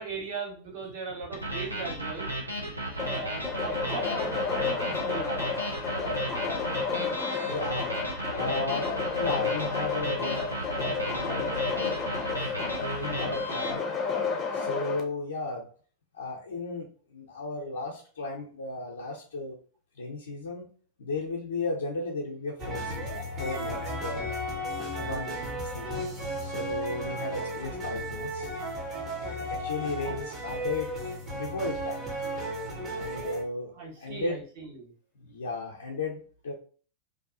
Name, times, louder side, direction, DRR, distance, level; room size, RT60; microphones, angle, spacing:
voice 1, 0.0-2.3 3.0-5.5 26.9-27.0 29.2-29.5 30.0-30.1 33.7-34.9, right 4 dB, 50° right, -4 dB, 1.2 m, -38 dB
sound 1, 1.3-13.7, right 1 dB, 85° right, 0.6 m, -35 dB
sound 2, 3.0-15.0, left 5 dB, 25° left, 0.6 m, -31 dB
voice 2, 7.4-7.9 8.3-8.9 9.2-10.4 10.7-12.0 12.4-12.5 12.8-13.8 14.5-15.7 16.1-19.6 20.0-20.7 21.0-24.4 24.9-26.0 26.4-28.5 29.3-30.9 31.3-32.2 32.9-33.7 34.0-34.4 35.2-36.5, left 2 dB, 65° left, -2 dB, 0.5 m, -35 dB
sound 3, 22.6-33.4, equal, 30° right, 0.8 m, -34 dB
2.6 x 2.3 x 2.5 m, 0.41 s
figure-of-eight pair, 90°, 0 cm